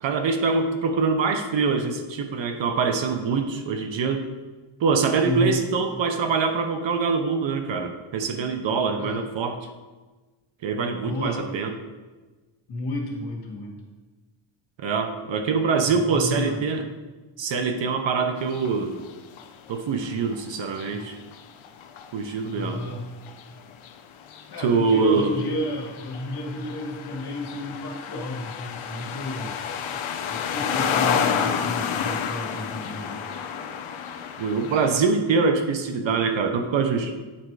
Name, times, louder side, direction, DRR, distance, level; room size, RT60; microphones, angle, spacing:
voice 1, 0.0-4.3 4.8-9.6 10.6-11.7 14.8-16.8 17.4-18.9 19.7-21.2 22.1-22.8 24.6-25.3 34.4-37.1, right 5 dB, 70° right, 6 dB, 0.9 m, -24 dB
voice 2, 5.2-5.6 9.0-9.2 10.7-11.4 12.7-13.8 15.8-16.6 20.9-21.0 22.5-23.0 24.5-29.6 30.3-33.2, left 1 dB, 50° left, -2 dB, 1.9 m, -32 dB
sound 1, 18.4-18.8 19.0-19.8 20.0-35.0, left 7 dB, 85° left, 0.8 m, -31 dB
8.8 x 4.4 x 4.8 m, 1.3 s
wide cardioid pair, 140°, 47 cm